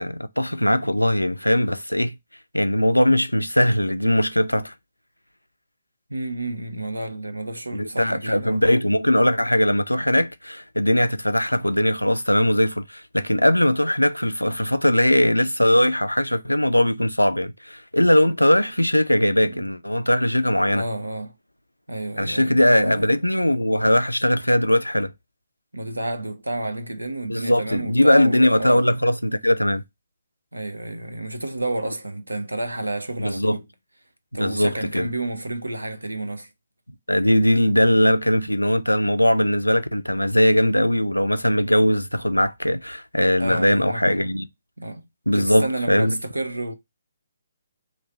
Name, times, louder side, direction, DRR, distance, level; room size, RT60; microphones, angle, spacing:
voice 1, 0.0-2.1 2.5-4.7 7.7-20.8 22.2-25.1 27.3-29.8 33.2-33.6 34.3-35.1 37.1-44.5 45.3-46.2, left 1 dB, 85° left, 0.3 m, -20 dB
voice 2, 6.1-8.6 19.4-19.7 20.7-21.3 21.9-23.1 25.7-28.8 30.5-33.6 34.3-36.5 43.4-44.3 44.8-45.0 45.3-46.7, right 2 dB, 80° right, 0.6 m, -30 dB
3.2 x 2.6 x 4.2 m
figure-of-eight pair, 135°, 0 cm